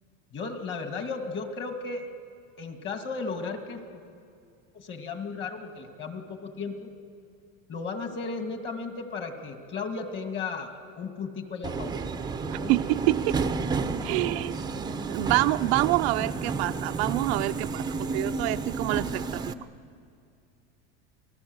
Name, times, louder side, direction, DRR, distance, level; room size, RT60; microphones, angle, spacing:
voice 1, 0.3-2.1 2.6-4.0 4.7-6.9 7.7-12.0 12.4-12.7 13.8-14.5, left 4 dB, 30° left, 6 dB, 2.4 m, -35 dB
Subway metro underground, 11.6-19.5, right 4 dB, 10° right, 0.7 m, -31 dB
voice 2, 12.5-13.4 14.0-14.6 15.0-17.9 18.1-19.5, right 18 dB, 60° right, 9 dB, 0.6 m, -27 dB
29.0 x 19.5 x 8.1 m, 2.4 s
supercardioid pair, 150°, 35 cm